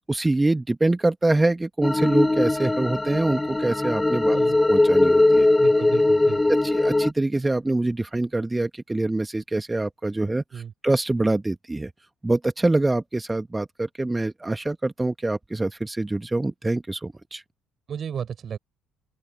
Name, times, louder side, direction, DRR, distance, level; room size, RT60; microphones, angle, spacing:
voice 1, 0.1-4.4 4.7-5.5 6.5-11.9 12.2-17.4, right 2 dB, 15° right, 2.3 m, -25 dB
sound 1, 1.8-7.1, left 2 dB, 15° left, 1.9 m, -20 dB
voice 2, 5.6-6.5 10.5-10.7 17.9-18.6, right 7 dB, 45° right, 6.2 m, -33 dB
open air
figure-of-eight pair, 50°, 0 cm